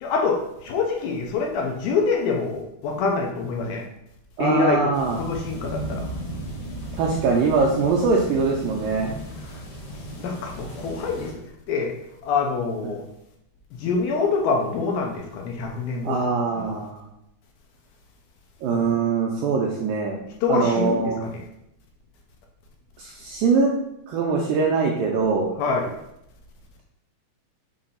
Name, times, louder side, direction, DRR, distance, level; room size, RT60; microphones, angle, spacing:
voice 1, 0.0-3.8 4.4-4.8 5.2-6.1 9.1-9.2 9.5-9.6 10.2-11.3 11.7-11.9 12.2-13.0 13.8-16.2 16.5-16.8 18.7-18.9 20.4-21.4 25.6-26.0, left 4 dB, 75° left, 1 dB, 2.3 m, -25 dB
voice 2, 4.4-5.2 6.9-9.1 12.8-12.9 16.0-17.0 18.6-20.2 20.5-21.2 23.0-23.7 24.1-25.5, right 4 dB, 85° right, -1 dB, 2.0 m, -22 dB
sound 1, 4.9-11.3, right 1 dB, 60° left, 2.1 m, -35 dB
6.7 x 2.6 x 5.5 m, 0.80 s
omnidirectional pair, 4.7 m